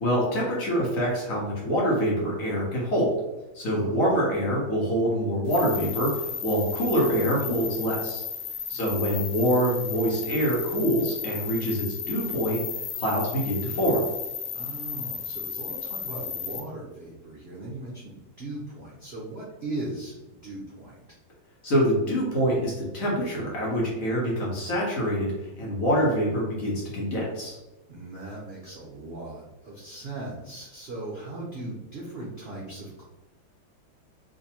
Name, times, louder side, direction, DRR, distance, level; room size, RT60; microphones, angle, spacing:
voice 1, 0.0-3.1 3.5-6.1 6.4-8.2 8.7-12.6 13.0-14.0 21.6-27.6, equal, 55° left, -4 dB, 1.2 m, -25 dB
sound 1, 5.5-16.6, left 6 dB, 85° left, 1.5 m, -34 dB
voice 2, 8.7-9.3 14.5-20.9 27.9-33.0, right 2 dB, 85° right, -6 dB, 0.5 m, -38 dB
3.8 x 2.6 x 2.8 m, 1.0 s
omnidirectional pair, 2.1 m